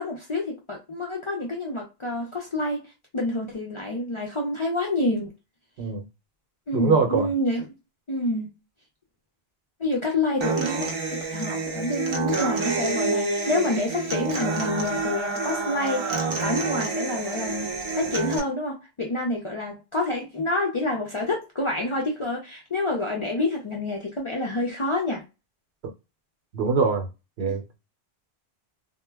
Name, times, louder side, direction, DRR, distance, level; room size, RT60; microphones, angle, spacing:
voice 1, 0.0-2.9 3.1-5.3 6.7-7.7 8.1-8.5 9.8-17.7 17.9-25.2 27.4-27.5, left 2 dB, 45° left, 0.4 m, -28 dB
voice 2, 6.7-7.3 25.8-25.9 26.5-27.1 27.4-27.8, right 4 dB, 80° right, 0.9 m, -23 dB
Human voice / Acoustic guitar, 10.4-18.4, right 3 dB, 40° right, 0.5 m, -28 dB
2.1 x 2.1 x 3.3 m
omnidirectional pair, 1.0 m